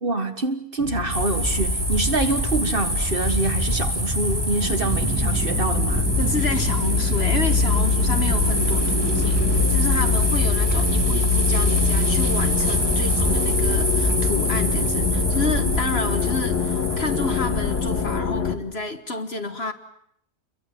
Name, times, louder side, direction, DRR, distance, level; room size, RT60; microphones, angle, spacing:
voice 1, 0.0-6.1, right 2 dB, 35° right, 1.7 m, -25 dB
sound 1, 0.8-18.6, left 5 dB, 85° left, 2.3 m, -24 dB
sound 2, 1.1-18.2, right 1 dB, 15° right, 3.1 m, -25 dB
sound 3, 4.6-9.7, right 6 dB, 85° right, 1.8 m, -32 dB
voice 2, 6.2-19.7, left 3 dB, 45° left, 1.5 m, -30 dB
28.5 x 22.5 x 7.6 m
omnidirectional pair, 1.6 m